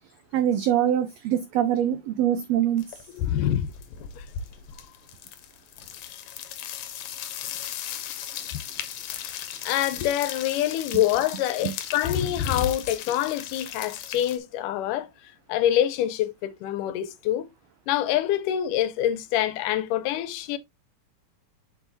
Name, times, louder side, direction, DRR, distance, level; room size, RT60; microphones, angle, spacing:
voice 1, 0.3-3.0 11.6-11.7, right 10 dB, 85° right, 1.4 m, -24 dB
sound 1, 2.8-3.2 3.4-14.4, left 10 dB, 70° left, 2.0 m, -37 dB
voice 2, 3.1-3.7 4.2-4.3 9.6-17.5 17.9-20.6, left 11 dB, 90° left, 2.3 m, -26 dB
7.0 x 6.0 x 2.7 m
omnidirectional pair, 3.6 m